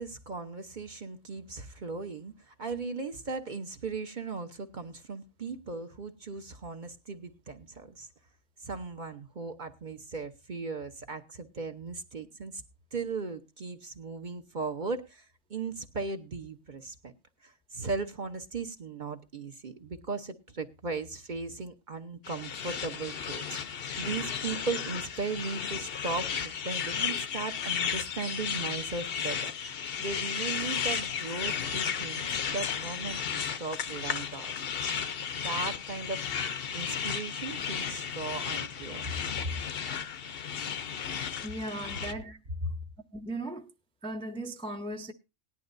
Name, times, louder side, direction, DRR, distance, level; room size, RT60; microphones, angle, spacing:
voice 1, 0.0-8.1 8.6-12.6 12.9-17.1 17.4-29.5 30.0-34.6 35.3-39.2 39.4-39.5 41.9-42.7, right 4 dB, 40° right, 1.0 m, -37 dB
sound 1, 22.2-42.1, left 7 dB, 55° left, 0.9 m, -34 dB
voice 2, 41.4-42.4 43.1-43.7 44.0-45.1, right 1 dB, 5° left, 0.6 m, -37 dB
18.0 x 11.0 x 2.6 m
omnidirectional pair, 1.3 m